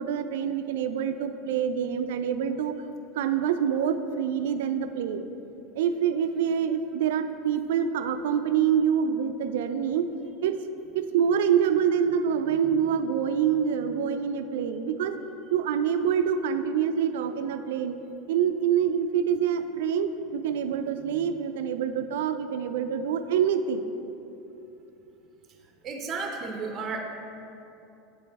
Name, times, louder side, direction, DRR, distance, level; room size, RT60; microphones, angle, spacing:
voice 1, 0.0-2.8 3.2-5.2 5.8-10.1 10.4-10.5 10.9-15.2 15.5-18.0 18.3-23.9, right 8 dB, 80° right, 9 dB, 0.3 m, -26 dB
voice 2, 25.8-27.0, right 4 dB, 35° right, 3 dB, 0.7 m, -33 dB
8.0 x 3.9 x 3.4 m, 2.9 s
supercardioid pair, 120°, 0 cm